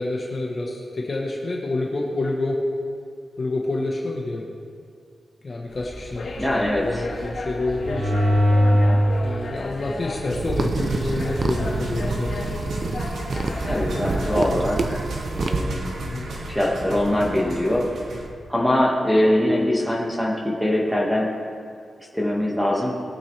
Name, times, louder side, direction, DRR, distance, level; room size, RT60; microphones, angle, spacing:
voice 1, 0.0-2.6 3.4-4.5 5.4-8.2 9.2-12.6 15.5-15.8 16.1-16.3, left 2 dB, 35° left, -1 dB, 1.3 m, -28 dB
sound 1, 5.7-14.5, left 2 dB, 55° left, 2.3 m, -34 dB
voice 2, 6.4-7.0 8.7-9.0 13.6-15.0 15.3-15.9 16.5-17.9 18.5-21.4 22.1-22.9, left 1 dB, ahead, -3 dB, 1.8 m, -22 dB
sound 2, 7.7-9.1 9.7-18.2, equal, 70° right, 1.7 m, -26 dB
sound 3, 10.3-15.6, right 3 dB, 40° right, 0.7 m, -28 dB
20.5 x 8.9 x 3.4 m, 2.3 s
wide cardioid pair, 165°, 0 cm